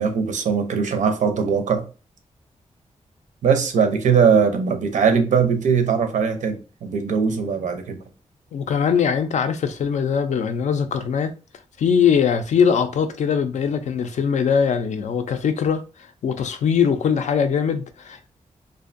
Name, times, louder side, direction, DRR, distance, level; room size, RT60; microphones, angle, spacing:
voice 1, 0.0-1.9 3.4-8.0, right 6 dB, 80° right, 0.5 m, -20 dB
voice 2, 8.5-11.3 11.8-15.8 16.2-18.3, left 7 dB, 70° left, 0.4 m, -21 dB
2.5 x 2.2 x 2.5 m
wide cardioid pair, 115°, 13 cm